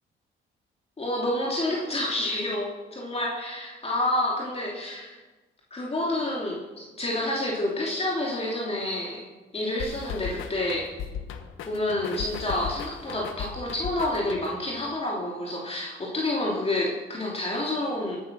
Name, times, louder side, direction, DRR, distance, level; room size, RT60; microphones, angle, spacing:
voice 1, 1.0-5.2 5.7-9.2 9.5-10.9 11.6-18.2, left 1 dB, 30° left, -3 dB, 3.0 m, -29 dB
sound 1, 9.8-14.8, left 7 dB, 85° left, 1.3 m, -37 dB
17.5 x 9.0 x 6.1 m, 1.2 s
cardioid pair, 90°, 20 cm